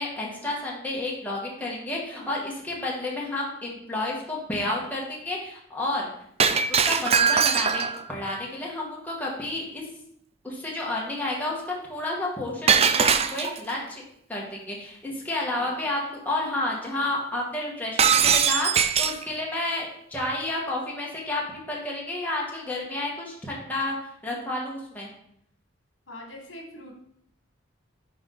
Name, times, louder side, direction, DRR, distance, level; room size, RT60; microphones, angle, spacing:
voice 1, 0.0-6.1 6.7-7.8 8.1-9.8 10.4-14.0 14.3-24.0 24.2-25.1, left 2 dB, 10° left, -4 dB, 1.6 m, -31 dB
Shatter, 6.4-8.1 12.7-13.7 18.0-19.2, right 6 dB, 35° right, 0.4 m, -21 dB
voice 2, 15.5-15.8 26.1-27.0, left 1 dB, 80° left, 1 dB, 1.5 m, -43 dB
10.5 x 3.6 x 3.9 m, 0.70 s
head